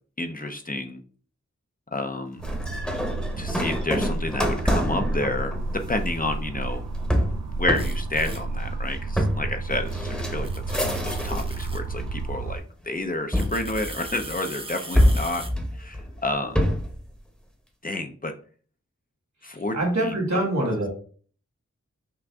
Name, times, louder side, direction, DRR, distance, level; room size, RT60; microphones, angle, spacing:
voice 1, 0.2-1.0 1.9-2.4 3.4-5.5 5.9-6.8 7.5-15.4 15.8-16.7 17.8-18.3 19.4-20.1, left 2 dB, 30° left, 6 dB, 0.6 m, -30 dB
sound 1, 2.4-11.6 12.0-12.6 13.3-14.4 14.9-17.0, equal, 5° left, 1.0 m, -26 dB
sound 2, 2.4-12.6, right 2 dB, 85° right, 0.6 m, -31 dB
sound 3, 7.7-8.4 9.9-10.0 10.4-11.9 13.3-15.5, right 2 dB, 20° right, 0.7 m, -40 dB
voice 2, 19.7-20.9, right 1 dB, 70° right, 0 dB, 2.1 m, -24 dB
5.9 x 2.6 x 3.5 m, 0.43 s
wide cardioid pair, 75°, 29 cm